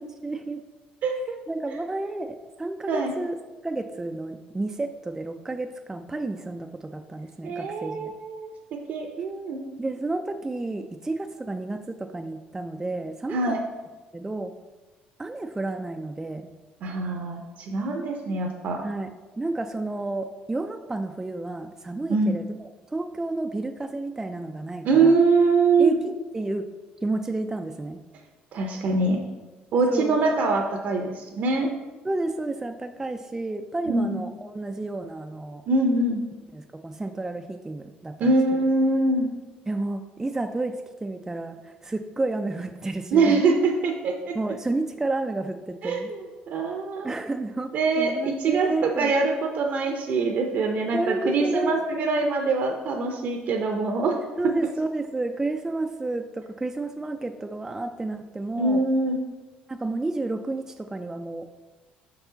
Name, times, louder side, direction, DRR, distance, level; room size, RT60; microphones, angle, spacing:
voice 1, 0.2-0.7 1.5-3.4 3.6-8.1 9.8-13.6 14.1-14.5 15.2-16.5 18.8-19.1 19.4-25.2 25.8-26.7 27.0-28.0 29.9-30.2 32.0-35.6 36.5-38.4 39.7-43.4 44.3-46.1 47.0-49.1 50.9-52.3 54.4-58.8 59.7-61.5, right 2 dB, 15° right, 5 dB, 0.3 m, -31 dB
voice 2, 7.4-8.5 8.9-9.6 13.3-13.6 16.8-18.8 22.1-22.3 24.8-26.0 28.5-29.2 29.7-31.7 33.9-34.2 35.7-36.2 38.2-39.3 43.1-44.4 45.8-46.2 46.5-47.1 47.7-54.2 58.6-59.2, right 3 dB, 60° right, 2 dB, 0.6 m, -23 dB
5.4 x 4.8 x 3.9 m, 1.3 s
cardioid pair, 100°, 3 cm